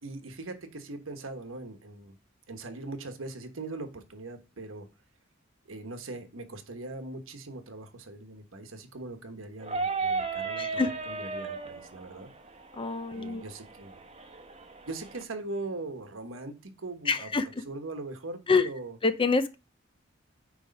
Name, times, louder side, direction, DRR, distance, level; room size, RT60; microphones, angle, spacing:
voice 1, 0.0-2.2 2.5-4.9 5.7-12.3 13.1-14.0 14.9-17.3 17.6-19.0, right 2 dB, 85° right, 1.2 m, -40 dB
sound 1, 9.6-15.2, right 4 dB, 30° right, 1.0 m, -35 dB
voice 2, 10.6-10.9 12.7-13.4 17.1-17.6 18.5-18.7 19.0-19.6, left 4 dB, 25° left, 0.6 m, -26 dB
9.4 x 3.4 x 5.2 m
head